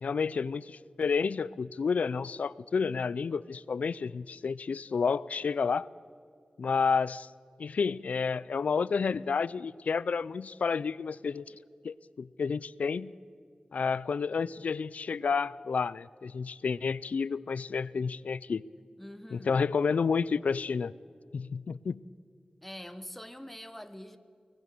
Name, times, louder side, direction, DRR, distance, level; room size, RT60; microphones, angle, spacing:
voice 1, 0.0-5.9 6.6-7.3 7.6-11.5 11.8-13.1 13.7-18.7 19.3-20.9 21.3-22.0, left 5 dB, 90° left, 20 dB, 0.4 m, -30 dB
voice 2, 19.0-19.6 22.6-24.2, left 1 dB, 5° left, 9 dB, 1.1 m, -44 dB
24.5 x 19.0 x 6.7 m, 2.2 s
wide cardioid pair, 85°, 2 cm